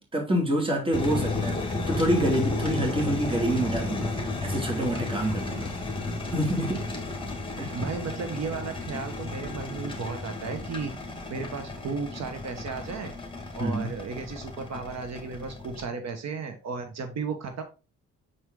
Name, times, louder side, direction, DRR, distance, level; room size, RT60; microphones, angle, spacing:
voice 1, 0.1-5.7 6.3-6.9 7.6-7.8 13.6-13.9, right 1 dB, 15° right, 2.5 m, -27 dB
sound 1, 0.9-15.8, left 3 dB, 15° left, 1.9 m, -33 dB
voice 2, 7.7-10.9 11.3-13.1 13.5-17.6, right 5 dB, 60° right, 1.4 m, -34 dB
6.3 x 4.8 x 3.8 m
cardioid pair, 90°, 30 cm